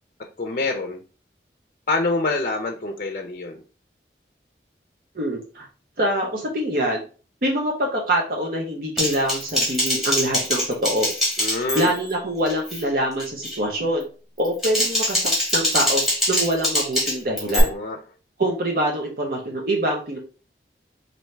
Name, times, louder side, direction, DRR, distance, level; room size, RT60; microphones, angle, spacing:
voice 1, 0.4-1.0 1.9-3.6 11.4-11.9 17.4-18.0, left 2 dB, 45° left, 3 dB, 0.5 m, -26 dB
voice 2, 5.1-5.7 6.0-7.0 7.4-11.1 11.7-14.0 14.4-16.0 16.3-17.7 18.4-20.2, right 1 dB, 55° right, -1 dB, 0.7 m, -24 dB
Typing, 9.0-12.1 12.5-12.8 13.2-13.6 14.4-17.6, left 1 dB, ahead, 1.6 m, -24 dB
4.4 x 2.6 x 3.2 m, 0.37 s
head